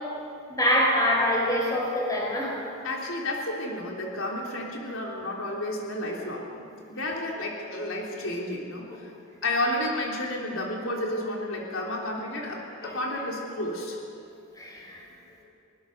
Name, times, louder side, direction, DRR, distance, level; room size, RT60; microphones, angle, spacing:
voice 1, 0.5-2.5 12.8-13.0 14.6-15.0, equal, 15° left, -2 dB, 4.8 m, -25 dB
voice 2, 2.8-9.1 9.4-14.0, left 1 dB, 80° left, -1 dB, 3.2 m, -31 dB
22.0 x 20.0 x 6.6 m, 2.6 s
head